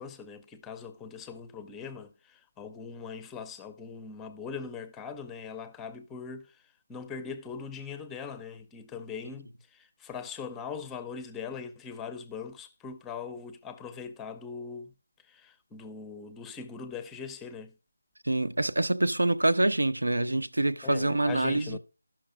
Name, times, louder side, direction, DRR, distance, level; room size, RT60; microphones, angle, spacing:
voice 1, 0.0-14.9 15.2-17.7 20.8-21.8, left 6 dB, 10° left, 0.6 m, -41 dB
voice 2, 18.2-21.8, right 2 dB, 85° right, 0.8 m, -26 dB
13.5 x 6.1 x 4.9 m
figure-of-eight pair, 165°, 0 cm